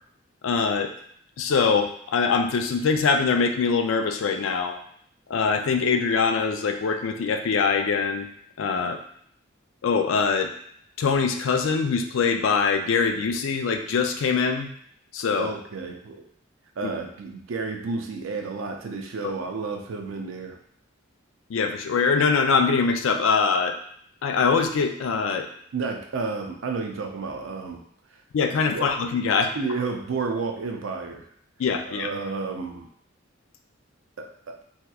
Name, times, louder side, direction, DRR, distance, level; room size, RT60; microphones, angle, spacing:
voice 1, 0.4-0.9 1.4-4.8 5.3-8.3 8.6-9.0 9.8-10.5 11.0-14.7 15.1-15.5 16.8-16.9 21.5-23.8 24.2-25.5 28.3-29.5 31.6-32.1, left 5 dB, 75° left, 6 dB, 0.4 m, -23 dB
voice 2, 15.4-16.2 16.8-20.6 25.7-27.8 28.7-28.8 29.5-31.3 31.8-32.9 34.2-34.7, right 4 dB, 75° right, 3 dB, 0.5 m, -31 dB
3.4 x 2.8 x 2.3 m, 0.65 s
head